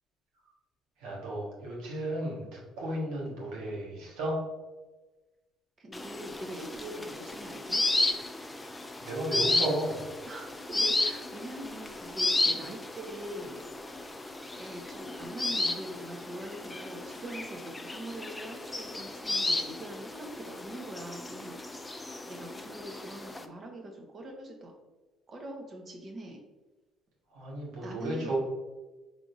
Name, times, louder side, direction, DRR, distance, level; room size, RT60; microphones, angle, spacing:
voice 1, 1.0-4.4 9.0-10.0 27.3-28.4, right 1 dB, 80° right, -3 dB, 1.4 m, -34 dB
voice 2, 5.8-7.8 10.2-13.6 14.5-24.7 25.3-26.4 27.8-28.4, right 1 dB, 40° right, 2 dB, 1.1 m, -43 dB
sound 1, 5.9-23.4, left 2 dB, 15° left, 0.4 m, -33 dB
4.7 x 3.5 x 2.6 m, 1.2 s
supercardioid pair, 75°, 0 cm